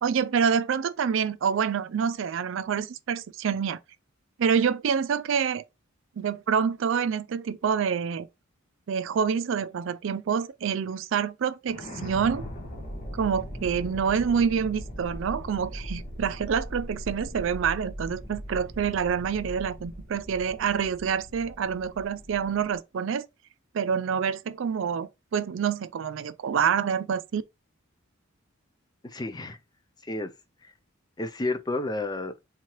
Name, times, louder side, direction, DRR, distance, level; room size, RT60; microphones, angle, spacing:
voice 1, 0.0-3.8 4.4-5.6 6.2-8.3 8.9-12.4 13.1-23.3 23.7-27.4, right 7 dB, 65° right, 0.4 m, -27 dB
sound 1, 11.7-22.8, equal, 35° left, 1.1 m, -39 dB
voice 2, 29.0-29.6 30.0-30.3 30.6-30.7 31.2-32.3, left 2 dB, 20° left, 0.4 m, -31 dB
3.6 x 3.1 x 2.9 m
head